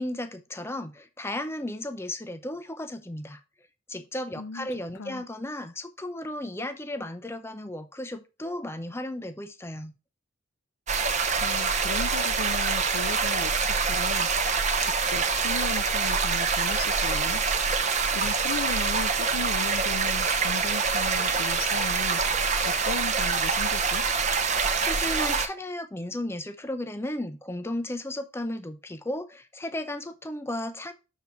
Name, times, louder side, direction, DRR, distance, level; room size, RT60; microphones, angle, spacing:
voice 1, 0.0-3.4 3.9-9.9 24.8-30.9, left 1 dB, 10° left, 0.6 m, -34 dB
voice 2, 4.4-4.7 5.0-5.2 11.4-14.5 14.8-17.4 17.8-24.0, left 4 dB, 85° left, 0.6 m, -37 dB
sound 1, 10.9-25.5, right 5 dB, 35° right, 0.9 m, -25 dB
7.0 x 4.0 x 5.8 m
head